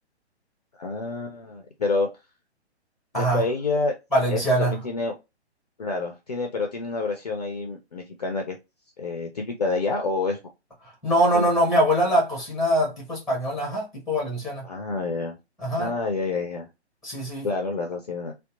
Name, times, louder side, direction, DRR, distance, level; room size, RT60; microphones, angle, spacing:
voice 1, 0.8-2.1 3.1-3.9 4.3-5.1 5.8-8.6 9.0-10.4 11.3-11.5 14.6-15.4 15.8-16.7 17.4-18.3, left 3 dB, 40° left, 0.4 m, -28 dB
voice 2, 4.1-4.8 11.0-14.6 15.6-15.9 17.0-17.5, right 1 dB, ahead, 0.8 m, -23 dB
2.7 x 2.2 x 2.3 m
figure-of-eight pair, 130°, 34 cm